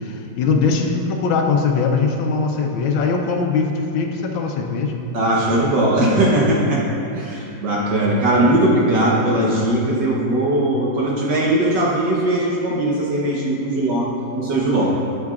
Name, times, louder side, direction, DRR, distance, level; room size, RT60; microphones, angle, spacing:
voice 1, 0.0-5.0, left 4 dB, 85° left, 3 dB, 1.5 m, -21 dB
voice 2, 5.1-6.8 7.1-15.0, right 1 dB, 65° right, -5 dB, 1.6 m, -19 dB
13.5 x 6.7 x 2.4 m, 2.9 s
omnidirectional pair, 2.1 m